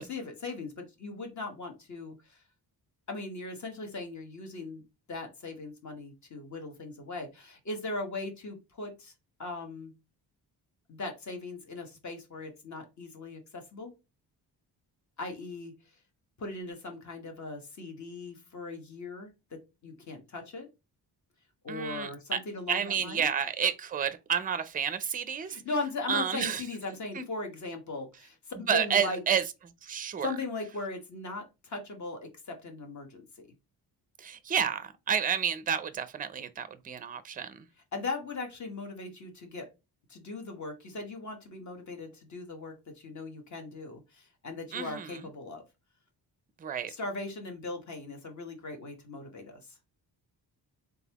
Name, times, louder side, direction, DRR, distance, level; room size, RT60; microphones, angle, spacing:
voice 1, 0.0-2.1 3.1-4.8 5.1-9.1 9.4-9.9 10.9-13.9 15.2-15.7 16.4-20.7 21.6-23.3 25.4-29.2 30.2-32.2 32.5-33.5 37.9-39.7 40.1-45.6 46.9-49.6, left 3 dB, 45° left, 1.2 m, -39 dB
voice 2, 21.7-22.4 22.7-25.6 26.1-26.6 27.1-27.3 28.7-29.4 29.8-30.3 34.2-37.7 44.7-45.3 46.6-46.9, right 8 dB, 20° right, 0.4 m, -30 dB
4.0 x 3.5 x 2.9 m
wide cardioid pair, 155°, 39 cm